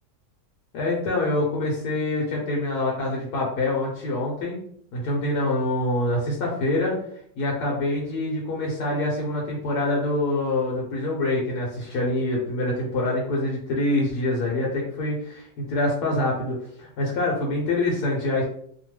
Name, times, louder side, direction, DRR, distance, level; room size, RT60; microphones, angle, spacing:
voice 1, 0.7-4.6 4.9-7.0 7.4-18.4, left 2 dB, 70° left, -2 dB, 1.1 m, -25 dB
2.8 x 2.1 x 3.1 m, 0.66 s
omnidirectional pair, 1.9 m